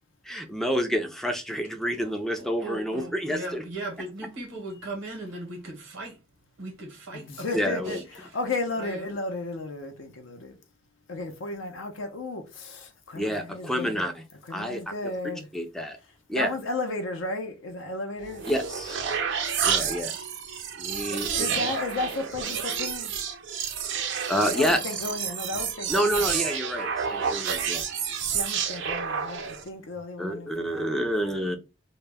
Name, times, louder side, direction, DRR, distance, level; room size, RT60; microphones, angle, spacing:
voice 1, 0.2-3.6 7.5-8.0 13.1-14.2 14.5-14.8 15.5-16.0 16.3-16.5 18.5-19.0 19.6-20.2 20.8-21.5 24.3-25.0 25.9-27.8 30.2-31.6, equal, ahead, 0.4 m, -28 dB
voice 2, 2.0-6.2 6.6-8.0 8.8-9.1, right 2 dB, 80° right, 0.8 m, -38 dB
voice 3, 7.1-10.6 11.1-14.1 14.4-15.5 16.3-18.4 21.1-23.1 24.4-26.4 28.3-31.6, left 2 dB, 70° left, 0.5 m, -34 dB
sound 1, 18.2-29.7, right 7 dB, 65° right, 0.4 m, -30 dB
2.1 x 2.0 x 3.2 m
head